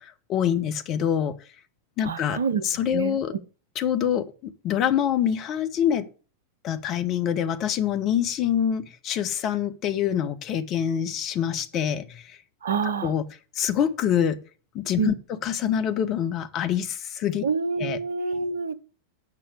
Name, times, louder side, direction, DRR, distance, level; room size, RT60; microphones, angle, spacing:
voice 1, 0.0-1.3 2.0-2.4 2.6-3.3 3.7-6.1 6.6-12.2 12.8-13.2 13.6-14.4 14.7-17.5 17.8-18.0, left 9 dB, 35° left, 1.0 m, -25 dB
voice 2, 2.1-2.6 2.9-3.2 12.6-13.1 15.0-15.1 17.4-18.8, right 5 dB, 65° right, 0.7 m, -27 dB
8.4 x 6.0 x 6.5 m
figure-of-eight pair, 90°, 0 cm